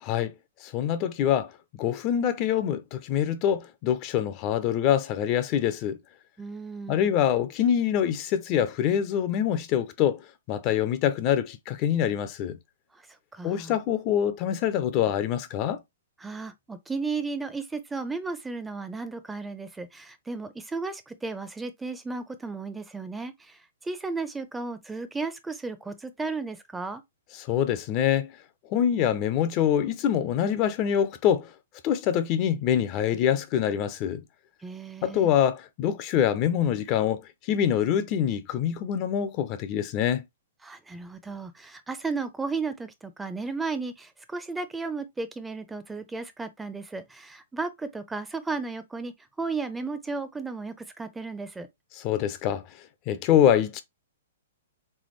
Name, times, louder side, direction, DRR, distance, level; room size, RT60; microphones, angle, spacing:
voice 1, 0.0-0.3 0.6-1.5 1.8-6.0 6.9-10.2 10.5-12.6 13.4-15.8 27.4-28.3 28.7-31.5 31.8-34.2 35.0-37.2 37.5-40.2 52.0-52.6 53.1-53.8, left 9 dB, 35° left, 0.5 m, -25 dB
voice 2, 6.4-7.1 13.3-13.8 16.2-27.0 34.6-35.3 40.6-49.1 49.4-51.7, right 4 dB, 10° right, 0.6 m, -34 dB
3.6 x 3.4 x 3.1 m
figure-of-eight pair, 115°, 0 cm